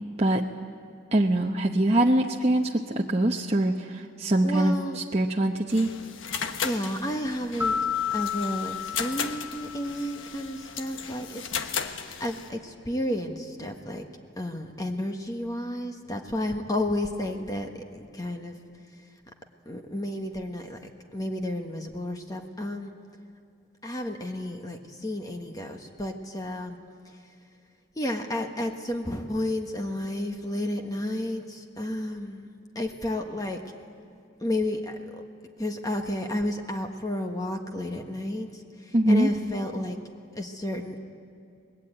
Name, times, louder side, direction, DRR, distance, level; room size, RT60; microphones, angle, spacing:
voice 1, 1.1-5.9 38.9-39.3, right 1 dB, 30° right, 1 dB, 0.9 m, -23 dB
voice 2, 4.4-5.0 6.6-7.8 8.1-11.5 11.9-14.0 14.4-18.5 19.6-20.8 21.1-22.9 23.8-26.8 28.0-32.5 32.7-33.6 34.4-35.2 35.6-40.0 40.3-41.0, left 1 dB, 20° left, 4 dB, 1.4 m, -32 dB
sound 1, 5.7-12.5, left 6 dB, 80° left, 1.3 m, -36 dB
sound 2, 7.6-10.4, left 7 dB, 10° right, 1.0 m, -31 dB
23.5 x 20.5 x 9.0 m, 2.5 s
head